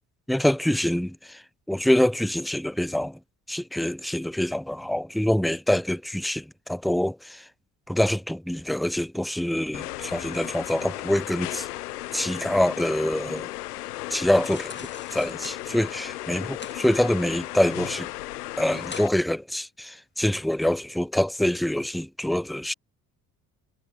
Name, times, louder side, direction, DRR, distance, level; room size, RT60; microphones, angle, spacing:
voice 1, 0.3-3.2 3.5-7.5 7.9-11.7 12.1-13.5 14.1-18.1 18.6-22.7, left 1 dB, ahead, 1.0 m, -25 dB
sound 1, 9.7-19.1, left 17 dB, 75° left, 3.4 m, -35 dB
sound 2, 14.3-15.6 16.3-16.8 17.2-18.0 18.4-18.5 18.8-19.1 19.6-19.7, left 4 dB, 25° left, 3.2 m, -43 dB
figure-of-eight pair, 50°, 47 cm